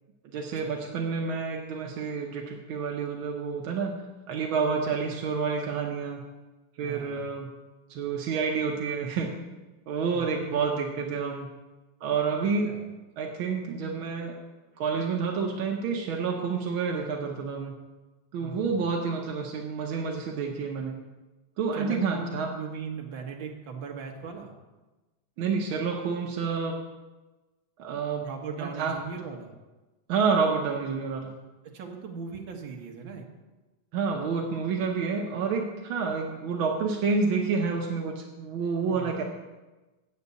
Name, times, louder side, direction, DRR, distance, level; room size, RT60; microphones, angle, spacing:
voice 1, 0.3-4.0 4.3-6.2 6.8-7.5 7.9-9.3 9.9-11.5 12.0-12.7 13.2-14.3 14.8-17.7 18.3-21.0 21.6-22.5 25.4-26.8 27.8-28.3 28.6-28.9 30.1-31.3 33.9-39.2, right 5 dB, 70° right, 0 dB, 1.2 m, -29 dB
voice 2, 6.8-7.3 10.1-10.4 12.7-12.8 18.4-18.8 21.7-24.5 28.2-29.5 31.7-33.3 38.9-39.2, right 5 dB, 55° right, 2 dB, 1.5 m, -39 dB
7.7 x 6.7 x 8.3 m, 1.1 s
omnidirectional pair, 3.3 m